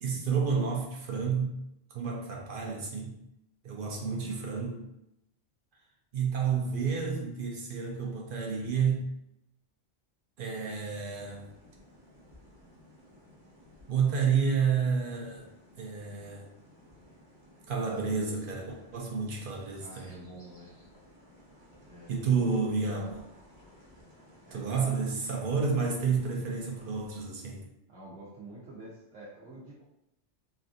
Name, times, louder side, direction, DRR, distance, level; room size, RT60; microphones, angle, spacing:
voice 1, 0.0-1.6 1.9-3.2 3.6-4.8 6.1-9.1 10.4-11.5 13.9-15.5 15.8-16.5 17.7-20.2 22.1-23.2 24.5-27.6, right 5 dB, 60° right, 0 dB, 0.6 m, -30 dB
voice 2, 3.9-4.4 19.7-20.7 21.8-22.4 22.9-23.2 24.5-25.0 27.9-29.8, right 2 dB, 85° right, -6 dB, 1.0 m, -47 dB
sound 1, 11.1-27.3, left 1 dB, 25° right, 0.7 m, -57 dB
3.3 x 2.3 x 2.5 m, 0.83 s
omnidirectional pair, 1.2 m